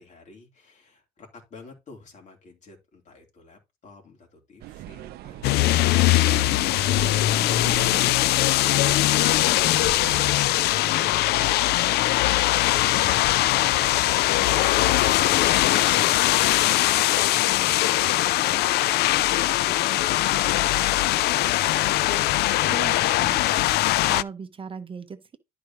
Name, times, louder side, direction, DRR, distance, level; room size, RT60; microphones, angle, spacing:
voice 1, 0.0-5.9, left 3 dB, 45° left, 3.5 m, -50 dB
sound 1, 4.6-10.2, right 14 dB, 70° right, 0.4 m, -40 dB
sound 2, 5.4-24.2, left 16 dB, 75° left, 0.4 m, -21 dB
voice 2, 7.6-8.2 22.7-23.7 24.1-25.4, right 6 dB, 30° right, 0.9 m, -38 dB
12.0 x 4.8 x 3.0 m
cardioid pair, 110°, 17 cm